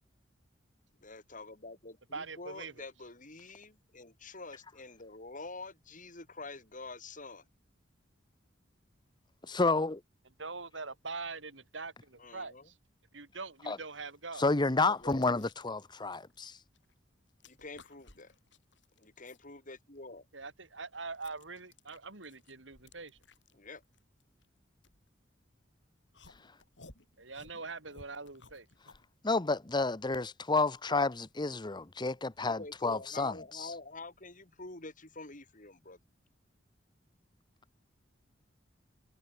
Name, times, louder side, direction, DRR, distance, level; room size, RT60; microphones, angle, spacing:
voice 1, 1.0-7.4 12.2-12.7 14.8-15.3 17.4-18.4 19.0-20.3 23.5-23.8 32.4-36.0, left 3 dB, 45° left, 7.5 m, -47 dB
voice 2, 2.1-2.8 10.4-12.8 13.1-14.5 20.3-23.2 27.2-28.7, right 4 dB, 90° right, 4.7 m, -43 dB
voice 3, 9.5-10.0 13.7-13.8 14.4-16.6 29.2-33.3, left 3 dB, 25° left, 0.9 m, -30 dB
sound 1, 14.9-16.9 17.2-19.5 19.9-25.6 26.1-29.1, left 3 dB, 70° left, 6.4 m, -59 dB
head